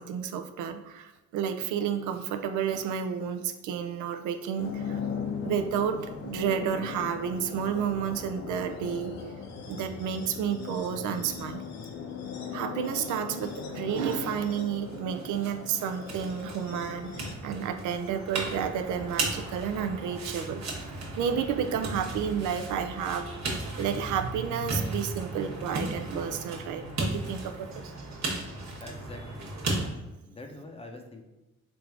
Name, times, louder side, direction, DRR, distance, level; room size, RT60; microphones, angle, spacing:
voice 1, 0.0-5.0 5.4-9.1 9.7-11.6 12.5-20.9 21.2-27.7, right 8 dB, 80° right, 7 dB, 0.5 m, -31 dB
sound 1, 4.6-17.3, left 6 dB, 60° left, 0.6 m, -38 dB
sound 2, 14.9-29.9, right 2 dB, 60° right, 1.1 m, -35 dB
voice 2, 28.8-29.6 30.2-31.2, left 2 dB, 20° left, 3 dB, 0.6 m, -44 dB
3.5 x 2.6 x 4.5 m, 1.1 s
cardioid pair, 90°, 30 cm